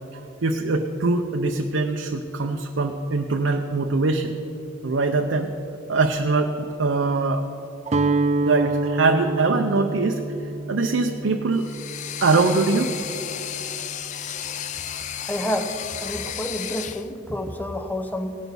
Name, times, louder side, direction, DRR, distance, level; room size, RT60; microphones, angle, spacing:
voice 1, 0.1-4.3 4.8-5.5 5.9-7.5 8.4-10.2 10.7-11.7 12.2-12.9, right 3 dB, 85° right, 3 dB, 0.6 m, -22 dB
Guitar, 7.9-13.9, right 3 dB, 35° right, 0.5 m, -28 dB
sound 1, 11.5-17.1, left 10 dB, 40° left, 0.3 m, -33 dB
voice 2, 15.2-18.4, equal, 10° left, 6 dB, 0.7 m, -29 dB
18.0 x 6.2 x 5.3 m, 2.8 s
head